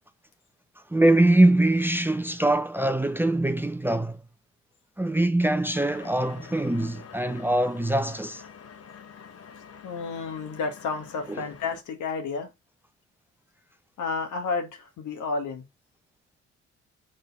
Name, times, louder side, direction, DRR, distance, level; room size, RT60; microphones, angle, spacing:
voice 1, 0.9-4.2 5.0-8.4 11.3-11.4, right 1 dB, 5° right, 0.6 m, -23 dB
sound 1, 5.8-11.8, left 6 dB, 55° left, 1.3 m, -47 dB
voice 2, 9.8-12.5 14.0-15.6, left 4 dB, 75° left, 2.1 m, -31 dB
5.0 x 4.5 x 5.6 m
cardioid pair, 90°, 30 cm